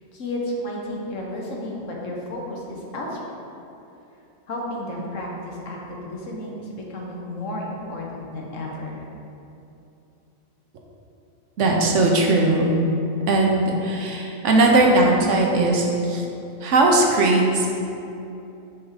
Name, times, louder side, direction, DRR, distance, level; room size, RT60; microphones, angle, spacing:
voice 1, 0.1-3.2 4.5-9.0 14.6-14.7, left 1 dB, 65° left, -2 dB, 1.3 m, -32 dB
voice 2, 11.6-12.7 13.3-16.2 16.6-17.8, right 2 dB, 65° right, 0 dB, 1.0 m, -19 dB
6.3 x 3.5 x 4.7 m, 2.8 s
omnidirectional pair, 1.4 m